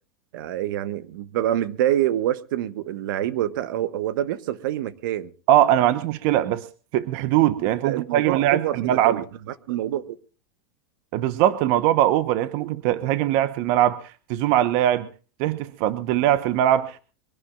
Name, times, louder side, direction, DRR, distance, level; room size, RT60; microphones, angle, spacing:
voice 1, 0.3-5.3 7.8-9.2 9.7-10.2, right 12 dB, 65° right, 14 dB, 1.3 m, -26 dB
voice 2, 5.5-6.6 6.9-9.2 11.1-15.1 15.4-17.0, right 12 dB, 45° right, 13 dB, 1.0 m, -21 dB
24.0 x 17.5 x 2.4 m, 0.36 s
supercardioid pair, 165°, 12 cm